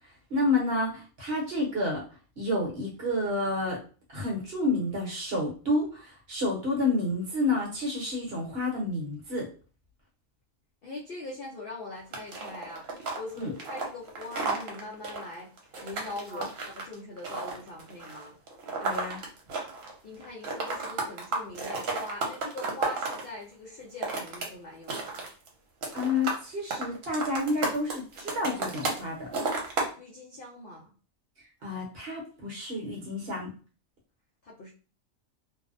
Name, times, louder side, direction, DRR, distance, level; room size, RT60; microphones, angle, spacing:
voice 1, 0.3-2.0 2.4-3.8 4.1-9.5 13.4-13.5 16.3-16.4 18.8-19.2 25.9-29.3 31.6-33.5, left 2 dB, 50° right, -2 dB, 1.0 m, -29 dB
voice 2, 10.8-12.8 13.2-18.4 19.8-25.3 30.0-30.9 34.4-34.7, left 2 dB, 60° left, -4 dB, 0.6 m, -42 dB
sound 1, 12.1-20.0 20.2-23.2 23.8-24.5 24.7-25.5 25.8-26.4 26.7-29.0 29.3-29.9, right 3 dB, 75° right, 1.1 m, -32 dB
2.6 x 2.0 x 2.4 m, 0.37 s
omnidirectional pair, 1.4 m